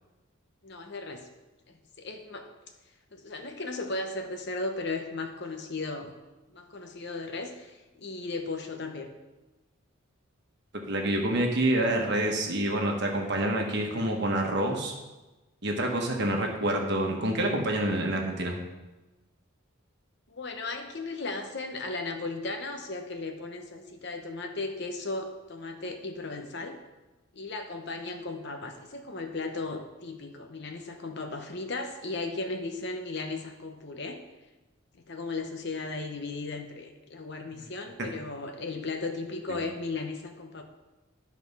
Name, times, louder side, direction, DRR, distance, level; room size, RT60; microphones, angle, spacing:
voice 1, 0.6-1.3 2.0-2.5 3.1-6.1 6.5-9.1 20.3-26.8 27.3-34.2 35.1-40.6, left 3 dB, 55° left, 5 dB, 0.9 m, -36 dB
voice 2, 10.9-14.9 15.6-18.6 39.5-39.6, right 1 dB, 50° right, 1 dB, 1.3 m, -27 dB
11.5 x 4.3 x 5.5 m, 1.1 s
head